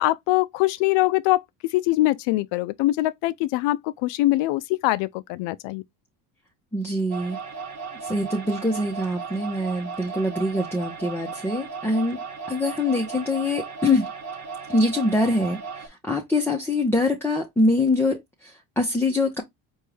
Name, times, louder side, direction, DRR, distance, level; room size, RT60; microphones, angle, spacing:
voice 1, 0.0-1.4 1.7-5.8, left 17 dB, 60° left, 0.6 m, -23 dB
voice 2, 6.7-7.4 8.0-14.0 14.7-19.4, left 2 dB, 5° left, 0.9 m, -24 dB
sound 1, 7.1-15.9, right 5 dB, 35° right, 1.4 m, -36 dB
4.5 x 2.6 x 3.3 m
hypercardioid pair, 75°, 49 cm